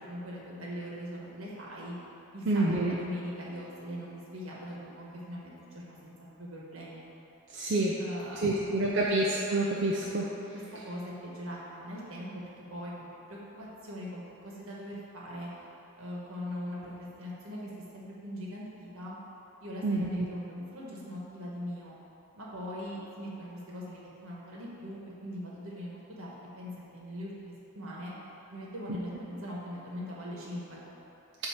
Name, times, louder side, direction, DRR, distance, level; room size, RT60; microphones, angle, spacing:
voice 1, 0.0-1.9 2.3-7.0 8.0-9.1 10.5-15.5 16.0-19.1 19.6-21.9 22.3-28.1 28.5-30.8, equal, 75° right, -5 dB, 1.4 m, -41 dB
voice 2, 2.5-3.0 7.5-7.9 8.4-10.2 19.8-20.1, right 2 dB, 55° right, -4 dB, 0.5 m, -27 dB
7.8 x 2.8 x 5.8 m, 3.0 s
head